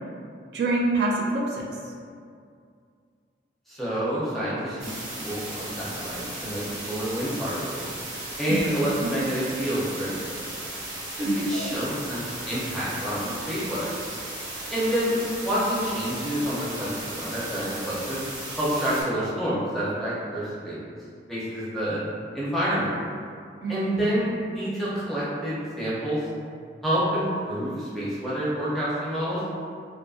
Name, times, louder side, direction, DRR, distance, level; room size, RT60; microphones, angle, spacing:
voice 1, 0.5-1.9 8.5-8.6 9.0-9.1 11.2-11.8 23.6-24.0, right 2 dB, 60° right, -2 dB, 0.3 m, -27 dB
voice 2, 3.7-7.9 8.4-10.4 11.2-13.9 14.7-18.2 18.6-20.8 21.3-22.0 22.3-22.9 23.7-26.2 26.8-29.4, equal, ahead, -9 dB, 0.5 m, -28 dB
sound 1, 4.8-19.0, right 1 dB, 85° right, 0.8 m, -36 dB
2.6 x 2.5 x 2.3 m, 2.3 s
head